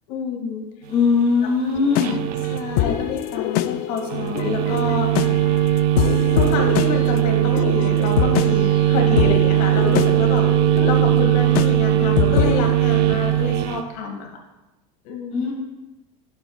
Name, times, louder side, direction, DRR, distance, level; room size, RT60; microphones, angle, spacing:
voice 1, 0.1-0.6 2.5-5.3 6.3-10.4 10.7-14.3 15.0-15.5, left 4 dB, 75° left, 1 dB, 2.2 m, -28 dB
voice 2, 0.9-2.2 15.3-15.5, left 5 dB, 35° left, -7 dB, 2.4 m, -19 dB
sound 1, 1.8-12.7, left 13 dB, 55° left, 0.4 m, -25 dB
sound 2, 1.9-3.1 4.1-13.8, right 14 dB, 85° right, 0.6 m, -19 dB
11.5 x 7.0 x 2.4 m, 1.0 s
supercardioid pair, 120°, 19 cm